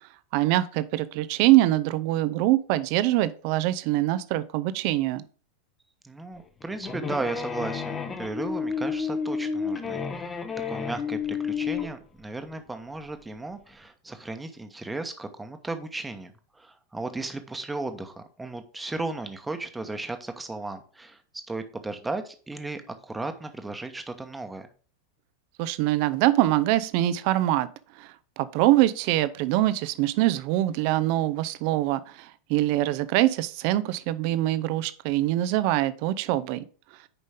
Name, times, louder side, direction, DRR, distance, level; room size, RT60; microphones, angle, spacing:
voice 1, 0.3-5.2 25.6-27.7 28.0-36.6, right 15 dB, 45° right, 15 dB, 0.6 m, -24 dB
voice 2, 6.0-10.4 10.7-24.7, right 2 dB, 10° right, 7 dB, 1.1 m, -35 dB
sound 1, 6.4-11.9, left 6 dB, 20° left, 0.9 m, -31 dB
9.7 x 5.3 x 3.5 m, 0.39 s
figure-of-eight pair, 90°, 0 cm